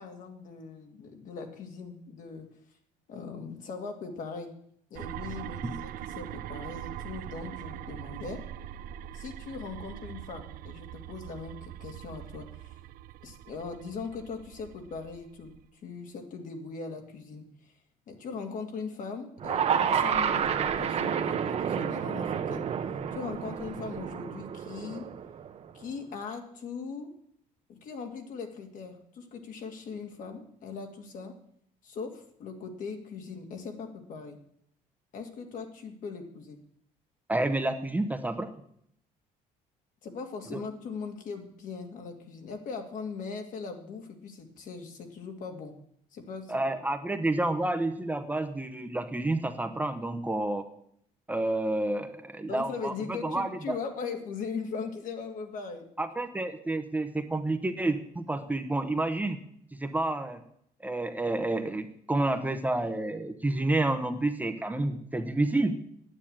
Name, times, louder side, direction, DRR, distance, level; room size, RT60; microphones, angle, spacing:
voice 1, 0.0-2.5 3.1-4.5 4.9-8.4 9.1-12.8 13.2-15.6 15.8-17.7 18.1-22.7 23.1-25.0 25.7-27.1 27.7-31.3 31.8-34.4 35.1-36.6 40.0-45.7 46.1-46.8 52.5-55.8, left 5 dB, 55° left, 4 dB, 2.3 m, -40 dB
sound 1, 5.0-15.7, right 12 dB, 70° right, 0.5 m, -42 dB
sound 2, 19.4-25.7, right 8 dB, 40° right, 1.0 m, -30 dB
voice 2, 37.3-38.5 40.5-40.6 46.5-50.6 51.3-53.8 56.0-59.4 59.8-60.4 60.8-65.8, right 2 dB, 10° right, 6 dB, 0.9 m, -29 dB
9.6 x 8.3 x 8.8 m, 0.70 s
cardioid pair, 120°, 16 cm